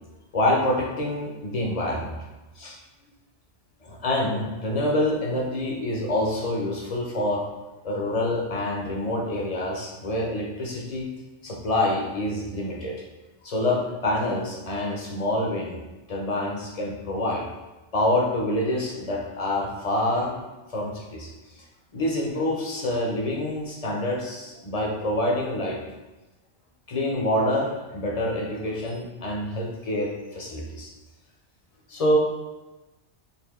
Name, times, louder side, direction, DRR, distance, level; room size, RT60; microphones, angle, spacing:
voice 1, 0.3-2.2 2.6-2.8 3.8-7.4 7.8-11.1 11.4-13.0 13.4-15.8 16.1-17.5 17.9-20.4 20.7-21.3 21.9-25.9 26.9-30.9 31.9-32.2, left 1 dB, 45° left, -1 dB, 0.5 m, -26 dB
4.1 x 2.6 x 3.5 m, 1.1 s
omnidirectional pair, 1.2 m